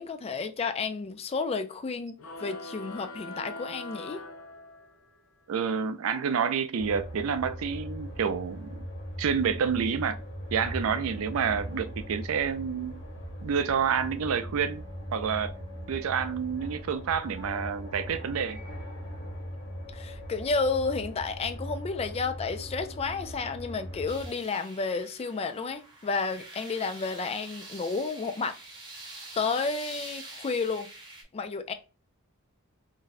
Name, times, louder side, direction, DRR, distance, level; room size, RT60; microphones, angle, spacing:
voice 1, 0.0-4.2 19.9-28.6 29.0-29.1 29.4-30.9 31.3-31.7, left 4 dB, 30° left, 0.3 m, -31 dB
sound 1, 2.2-5.2, left 2 dB, 75° left, 0.7 m, -42 dB
voice 2, 5.5-8.8 9.2-10.2 10.5-13.0 13.4-14.8 15.1-15.5 15.9-18.6, right 6 dB, 70° right, 0.4 m, -28 dB
sound 2, 6.8-24.3, equal, 55° left, 1.3 m, -40 dB
sound 3, 24.1-31.2, right 2 dB, 20° right, 0.7 m, -46 dB
2.6 x 2.1 x 3.9 m
head